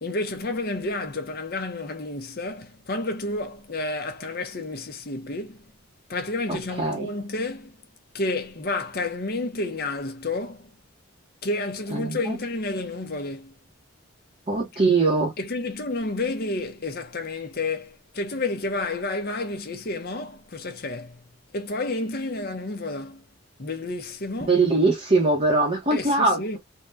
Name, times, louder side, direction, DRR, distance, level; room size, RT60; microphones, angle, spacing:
voice 1, 0.0-5.7 6.1-7.8 8.1-10.7 11.4-13.5 15.4-21.2 21.5-23.2 23.6-24.6 25.9-26.6, left 2 dB, 45° left, 0.9 m, -30 dB
voice 2, 6.5-7.1 11.9-12.4 14.5-15.4 24.5-26.6, right 3 dB, 30° right, 0.9 m, -22 dB
3.7 x 2.3 x 2.7 m
head